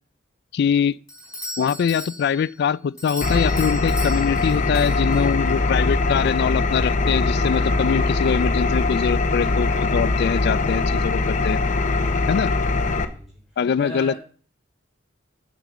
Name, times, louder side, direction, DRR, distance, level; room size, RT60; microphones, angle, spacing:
voice 1, 0.5-1.0 1.6-11.6 12.3-12.5 13.6-14.1, left 7 dB, 60° left, 0.3 m, -23 dB
Doorbell, 1.1-5.6, equal, 15° left, 3.4 m, -37 dB
Engine, 3.2-13.0, left 3 dB, 40° left, 0.8 m, -21 dB
voice 2, 12.0-12.4 12.8-13.3 13.8-14.2, equal, ahead, 3.6 m, -37 dB
9.2 x 5.2 x 6.6 m
head